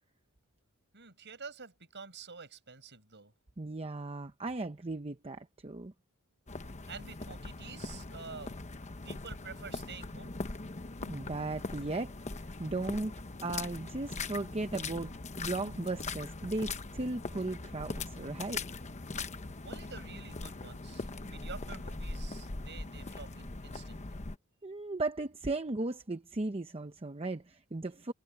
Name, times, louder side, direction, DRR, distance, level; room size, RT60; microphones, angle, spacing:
voice 1, 0.9-3.3 6.9-8.6 9.0-10.4 19.6-24.2, right 5 dB, 55° right, 7.5 m, -48 dB
voice 2, 3.6-5.9 11.0-13.1 13.4-18.6 24.6-28.1, right 2 dB, 25° right, 0.8 m, -36 dB
sound 1, 6.5-24.4, left 3 dB, 35° left, 1.0 m, -41 dB
head